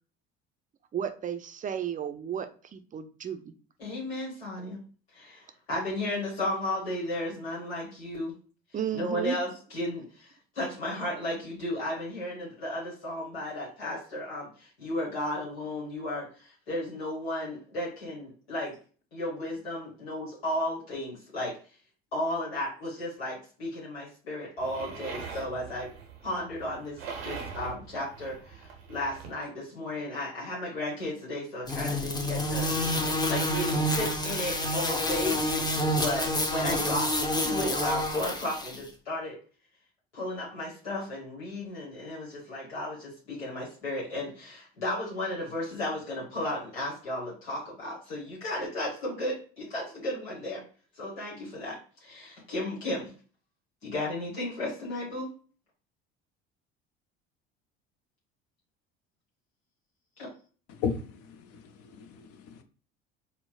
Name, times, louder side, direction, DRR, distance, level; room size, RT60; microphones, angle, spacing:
voice 1, 0.9-3.5 8.7-9.4, right 9 dB, 25° right, 9 dB, 0.4 m, -33 dB
voice 2, 3.8-4.8 5.1-8.3 8.9-18.7 19.1-21.5 22.1-25.9 26.2-32.7 33.2-35.4 36.0-37.1 37.4-39.4 40.1-50.6 50.9-53.1 53.8-55.3 60.2-60.3, left 1 dB, 85° left, -6 dB, 1.2 m, -34 dB
sound 1, 24.6-29.4, right 6 dB, 90° right, 0.7 m, -42 dB
sound 2, 31.7-38.8, left 1 dB, 15° left, 0.6 m, -28 dB
voice 3, 60.7-62.6, left 6 dB, 55° left, 8 dB, 0.5 m, -35 dB
4.4 x 2.0 x 2.3 m, 0.39 s
hypercardioid pair, 65°, 30 cm